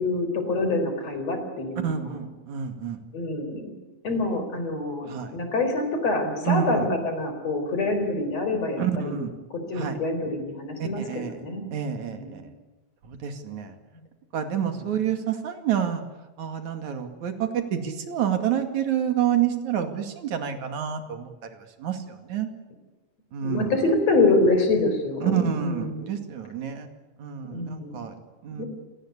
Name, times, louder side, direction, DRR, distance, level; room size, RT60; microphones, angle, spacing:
voice 1, 0.0-2.2 3.1-3.7 4.0-9.2 9.5-11.7 12.1-12.5 23.4-26.2 27.4-28.0 28.5-28.7, left 2 dB, 60° left, 7 dB, 5.4 m, -26 dB
voice 2, 1.8-3.0 5.1-5.3 6.4-6.9 8.8-9.3 9.8-10.0 10.8-11.4 11.7-12.4 13.1-13.7 14.3-16.0 16.4-21.3 21.8-22.5 23.3-23.7 25.2-26.9 27.2-28.6, right 9 dB, 75° right, 7 dB, 3.6 m, -28 dB
27.5 x 18.5 x 8.4 m, 1.2 s
omnidirectional pair, 3.4 m